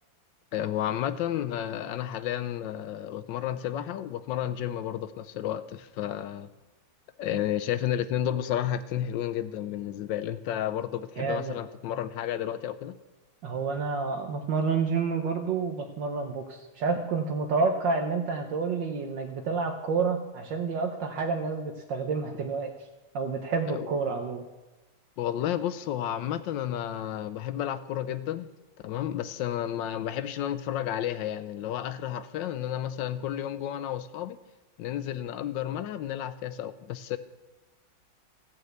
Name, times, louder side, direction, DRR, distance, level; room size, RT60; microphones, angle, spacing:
voice 1, 0.5-6.5 7.2-13.0 23.7-23.9 25.2-28.5 28.8-34.4 34.8-37.2, left 11 dB, 75° left, 13 dB, 1.3 m, -31 dB
voice 2, 11.2-11.6 13.4-22.7 23.1-24.4, right 4 dB, 70° right, 3 dB, 1.5 m, -29 dB
14.5 x 5.6 x 7.9 m, 1.1 s
omnidirectional pair, 2.1 m